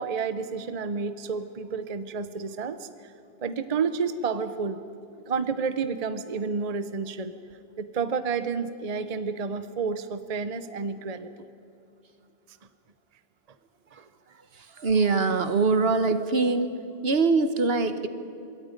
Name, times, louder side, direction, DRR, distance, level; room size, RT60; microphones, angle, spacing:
voice 1, 0.0-3.1 3.4-4.8 5.3-7.3 7.8-11.5, right 5 dB, 40° right, 11 dB, 0.8 m, -30 dB
voice 2, 14.8-16.7 17.0-18.1, right 4 dB, 70° right, 10 dB, 1.4 m, -23 dB
26.0 x 22.0 x 5.2 m, 2.8 s
omnidirectional pair, 1.1 m